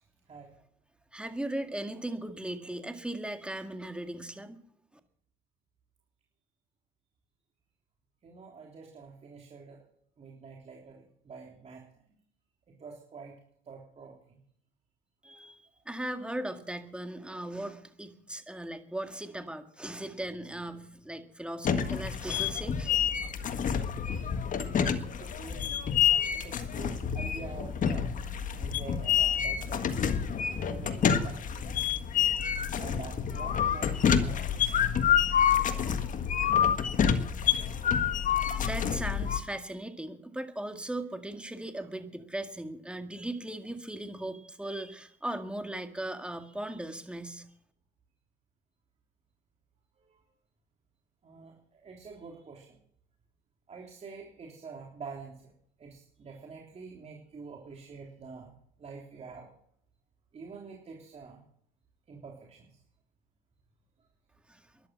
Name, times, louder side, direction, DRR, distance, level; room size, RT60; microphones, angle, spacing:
voice 1, 1.1-4.6 15.2-22.9 38.5-47.4, right 1 dB, 5° right, 7 dB, 2.0 m, -38 dB
voice 2, 8.2-9.8 10.2-11.8 12.8-13.4 13.7-14.4 25.2-26.0 26.3-28.1 28.6-29.9 30.7-31.4 32.8-34.6 35.5-35.8 41.7-41.8 50.1-50.2 51.2-52.8 53.7-55.5 55.8-59.5 60.3-61.4 62.1-62.7, right 5 dB, 35° right, -1 dB, 3.5 m, -47 dB
sound 1, 21.6-39.4, left 8 dB, 45° left, 1.6 m, -28 dB
12.5 x 11.5 x 7.6 m, 0.66 s
cardioid pair, 105°, 19 cm